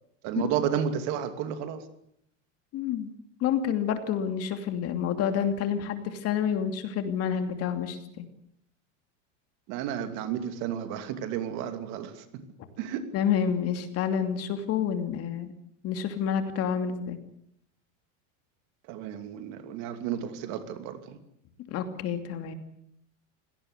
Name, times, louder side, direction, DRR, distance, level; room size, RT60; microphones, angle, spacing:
voice 1, 0.2-1.8 9.7-12.4 12.8-13.1 18.9-21.2, right 9 dB, 50° right, 9 dB, 2.8 m, -32 dB
voice 2, 2.7-3.1 3.4-8.3 13.1-15.5 15.8-17.2 21.7-22.5, left 8 dB, 40° left, 8 dB, 2.8 m, -29 dB
25.0 x 18.0 x 8.2 m, 0.72 s
supercardioid pair, 150°, 38 cm